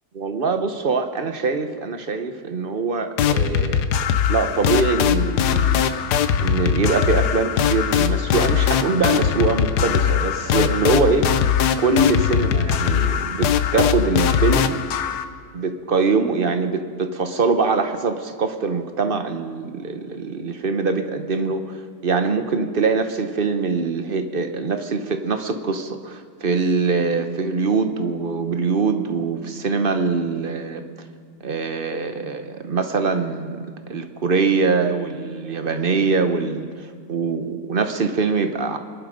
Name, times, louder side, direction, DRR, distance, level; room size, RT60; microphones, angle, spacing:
voice 1, 0.1-3.8 4.3-5.9 6.4-11.3 11.8-14.8 15.5-21.8 22.0-30.8 31.4-38.8, right 4 dB, 40° right, 7 dB, 1.0 m, -23 dB
sound 1, 3.2-15.2, left 8 dB, 90° left, 1.3 m, -20 dB
24.5 x 11.5 x 5.2 m, 2.1 s
omnidirectional pair, 1.7 m